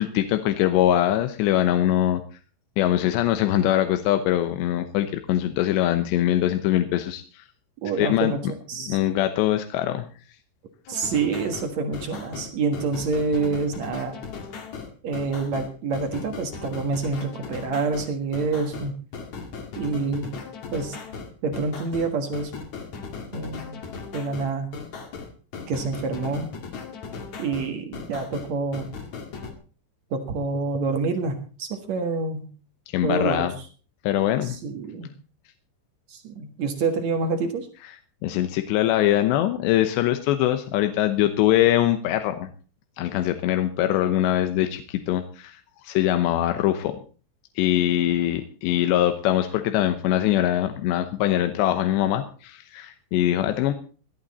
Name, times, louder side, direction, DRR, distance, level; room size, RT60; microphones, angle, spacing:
voice 1, 0.0-2.2 2.8-7.4 8.0-8.3 8.9-10.1 32.9-33.5 34.0-34.6 38.2-42.5 43.0-45.6 45.8-46.9 47.6-53.7, left 12 dB, 75° left, 8 dB, 2.8 m, -22 dB
voice 2, 7.8-9.0 10.9-14.2 15.0-18.9 19.8-20.3 20.7-21.0 21.4-22.5 23.3-23.8 24.1-24.7 25.7-26.5 27.4-29.0 30.1-32.4 33.0-33.5 34.4-35.1 36.1-37.7, right 4 dB, 65° right, 5 dB, 1.7 m, -27 dB
sound 1, 10.9-29.5, left 5 dB, 50° left, 2.6 m, -37 dB
17.0 x 12.0 x 4.2 m, 0.38 s
omnidirectional pair, 5.7 m